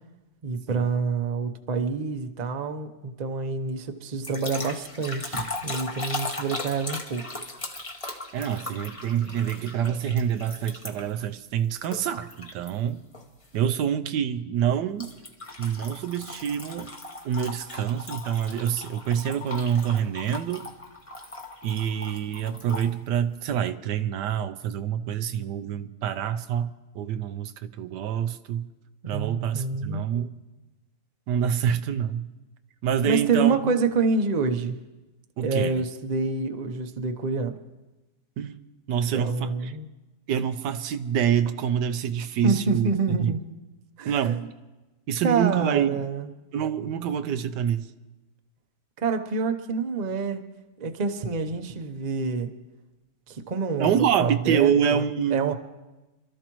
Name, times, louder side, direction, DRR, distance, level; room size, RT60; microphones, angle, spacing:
voice 1, 0.4-7.3 29.1-30.1 33.1-34.8 35.4-37.6 39.1-39.9 42.4-43.4 44.0-44.4 45.2-46.3 49.0-50.4 50.8-52.5 53.3-54.7 55.3-55.5, right 4 dB, 35° right, 0.7 m, -27 dB
sound 1, 4.2-11.2 11.8-12.7 13.1-13.4 15.0-22.9, left 2 dB, 25° left, 1.0 m, -38 dB
voice 2, 8.3-13.0 13.5-15.1 15.6-16.9 17.2-20.7 21.6-28.7 29.1-30.3 31.3-32.3 32.8-33.8 35.4-35.7 38.4-38.6 38.9-39.7 40.3-42.9 43.2-43.4 44.1-44.5 45.1-46.0 46.5-47.9 53.8-55.5, right 9 dB, 80° right, 1.3 m, -26 dB
27.0 x 13.0 x 3.1 m
omnidirectional pair, 1.8 m